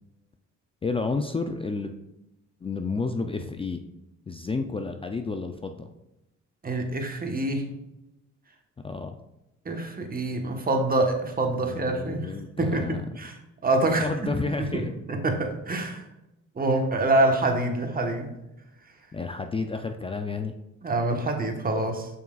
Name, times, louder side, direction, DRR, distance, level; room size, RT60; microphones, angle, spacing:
voice 1, 0.8-1.9 2.6-3.8 4.3-5.9 8.8-9.2 11.4-13.0 13.9-14.9 19.1-20.5, left 3 dB, 20° left, 6 dB, 0.4 m, -31 dB
voice 2, 6.6-7.7 9.6-12.3 12.6-13.3 13.6-14.1 14.7-14.8 15.1-16.0 16.5-18.3 20.8-22.1, right 2 dB, 30° right, 3 dB, 1.2 m, -26 dB
7.2 x 5.9 x 2.4 m, 0.91 s
cardioid pair, 90°, 30 cm